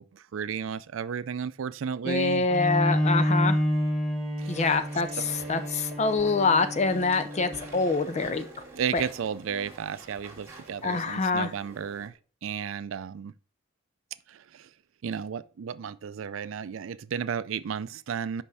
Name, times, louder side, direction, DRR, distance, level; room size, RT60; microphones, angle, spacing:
voice 1, 0.0-2.5 4.4-4.8 5.1-5.6 8.7-12.1 12.4-13.3 14.3-14.7 15.0-18.4, right 7 dB, 70° right, 0.4 m, -33 dB
voice 2, 2.0-3.6 4.5-8.6 8.9-9.0 10.8-11.5, left 4 dB, 35° left, 0.5 m, -25 dB
Bowed string instrument, 2.5-8.1, equal, ahead, 1.4 m, -29 dB
Walk footsteps / Chatter / Squeak, 4.4-12.1, right 2 dB, 15° right, 2.1 m, -48 dB
5.5 x 5.3 x 4.8 m
head